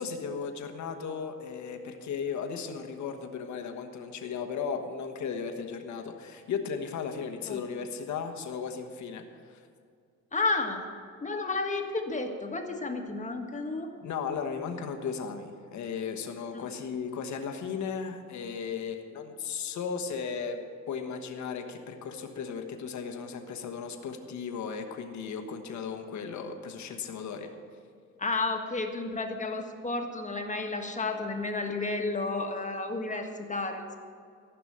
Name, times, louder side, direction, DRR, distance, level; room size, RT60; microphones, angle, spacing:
voice 1, 0.0-9.6 14.0-27.5, left 6 dB, 70° left, 5 dB, 1.4 m, -36 dB
voice 2, 10.3-10.8 11.2-13.9 16.5-16.7 28.2-33.9, left 3 dB, 25° left, 3 dB, 1.5 m, -32 dB
14.5 x 6.1 x 8.7 m, 2.2 s
cardioid pair, 90°, 30 cm